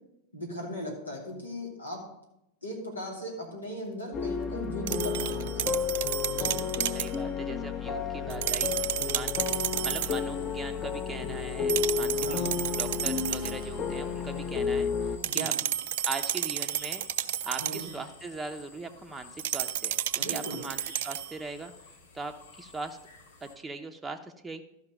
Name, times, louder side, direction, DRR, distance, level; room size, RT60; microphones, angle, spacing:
voice 1, 0.3-2.0 2.6-5.7 6.3-6.5 12.1-12.5 15.2-15.5 17.6-17.8 20.2-20.6, equal, 80° left, -1 dB, 2.7 m, -38 dB
sound 1, 4.1-15.2, left 6 dB, 30° left, 1.0 m, -32 dB
sound 2, 4.9-7.2 8.3-10.2 11.7-13.6 15.2-18.0 19.4-21.4, right 12 dB, 55° right, 0.4 m, -32 dB
voice 2, 6.5-15.5 16.0-17.0 17.4-21.7 22.1-23.0 23.4-24.6, right 3 dB, 10° right, 4 dB, 0.7 m, -40 dB
sound 3, 9.4-23.6, left 4 dB, 65° left, 1.5 m, -52 dB
12.5 x 5.7 x 5.2 m, 0.85 s
figure-of-eight pair, 90°, 0 cm